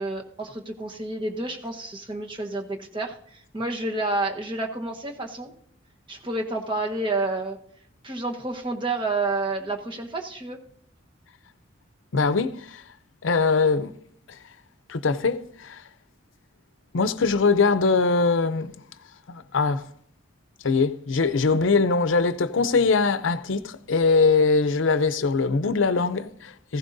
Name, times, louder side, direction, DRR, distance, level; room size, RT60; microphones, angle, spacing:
voice 1, 0.0-5.5 6.1-7.6 8.0-10.6, right 2 dB, 25° right, 1.1 m, -29 dB
voice 2, 12.1-12.8 13.2-13.9 14.3-14.4 14.9-15.8 16.9-18.7 19.3-19.8 20.6-26.8, left 4 dB, 80° left, 0.6 m, -22 dB
16.0 x 15.5 x 2.6 m
head